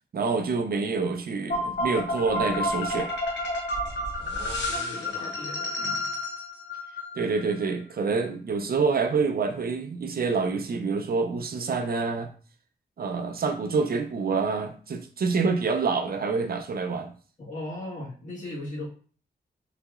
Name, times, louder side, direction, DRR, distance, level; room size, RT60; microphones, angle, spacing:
voice 1, 0.1-3.1 5.8-6.0 7.2-12.3 13.0-17.1, right 4 dB, 55° right, 0.5 m, -27 dB
sound 1, 1.5-7.6, left 1 dB, 90° left, 1.1 m, -30 dB
voice 2, 4.2-6.1 17.4-18.9, left 1 dB, 45° left, 1.6 m, -38 dB
4.0 x 2.8 x 2.4 m
wide cardioid pair, 100°, 18 cm